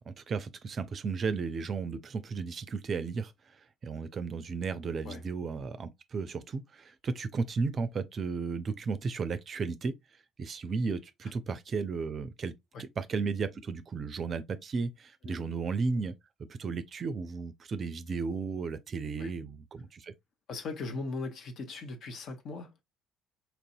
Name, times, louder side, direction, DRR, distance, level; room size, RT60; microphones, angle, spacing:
voice 1, 0.0-9.9 10.4-12.5 12.8-16.1 16.5-20.1, right 4 dB, 40° right, 0.4 m, -34 dB
voice 2, 20.5-22.8, left 3 dB, 55° left, 0.8 m, -39 dB
4.3 x 2.6 x 2.6 m
figure-of-eight pair, 55°, 0 cm